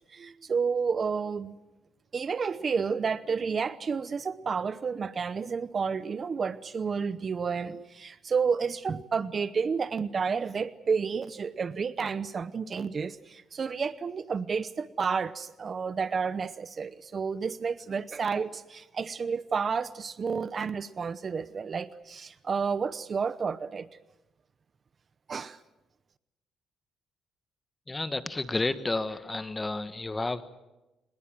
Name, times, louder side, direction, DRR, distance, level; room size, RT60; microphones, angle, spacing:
voice 1, 0.1-1.6 2.1-23.9 25.3-25.6, right 5 dB, 40° right, 16 dB, 0.8 m, -31 dB
voice 2, 27.9-30.4, left 2 dB, 20° left, 12 dB, 1.3 m, -31 dB
24.0 x 20.5 x 7.6 m, 1.0 s
cardioid pair, 90°, 0 cm